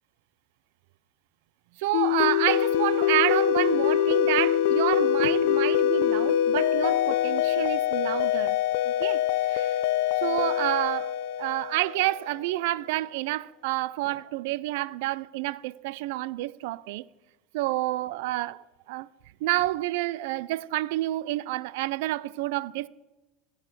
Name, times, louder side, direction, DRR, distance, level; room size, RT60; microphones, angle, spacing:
voice 1, 1.8-8.6 8.9-9.2 9.5-9.8 10.2-17.0 17.5-19.1 19.4-22.9, right 17 dB, 80° right, 0.4 m, -29 dB
sound 1, 1.9-12.3, left 10 dB, 80° left, 0.5 m, -24 dB
19.5 x 7.1 x 6.0 m
cardioid pair, 145°, 0 cm